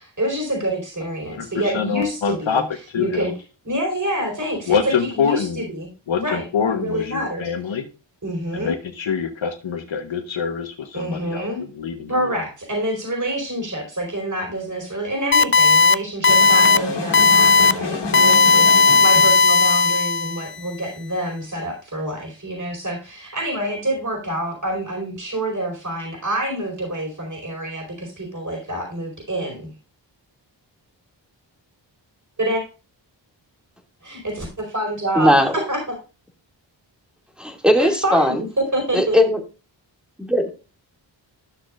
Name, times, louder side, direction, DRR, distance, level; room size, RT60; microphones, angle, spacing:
voice 1, 0.0-2.6 2.9-3.3 3.6-5.9 6.2-7.5 8.2-8.7 10.9-11.6 12.1-29.7 32.4-32.6 34.0-36.0 37.8-39.2, right 1 dB, 40° right, 0 dB, 4.8 m, -27 dB
voice 2, 1.4-2.6 2.9-3.3 4.7-5.6 6.1-7.9 8.5-11.5 11.8-12.1, left 6 dB, 80° left, 4 dB, 1.2 m, -25 dB
sound 1, 15.3-15.9 16.2-16.8 17.1-17.7 18.1-20.5, left 4 dB, 30° left, 0.4 m, -14 dB
sound 2, 16.3-19.4, left 4 dB, 60° left, 2.3 m, -28 dB
voice 3, 35.2-35.5 37.4-38.4 38.9-39.4 40.2-40.5, left 1 dB, ahead, 1 dB, 2.3 m, -18 dB
12.5 x 6.4 x 2.5 m, 0.32 s
cardioid pair, 55°, 45 cm